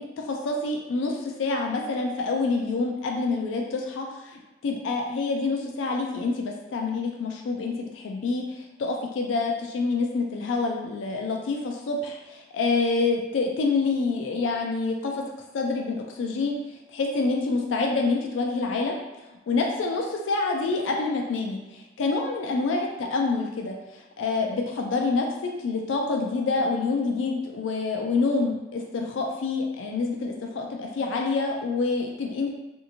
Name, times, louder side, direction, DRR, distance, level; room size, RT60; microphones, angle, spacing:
voice 1, 0.0-15.2 15.5-16.6 16.9-19.0 19.5-32.5, left 3 dB, 85° left, 1 dB, 0.4 m, -27 dB
2.7 x 2.5 x 2.7 m, 1.1 s
head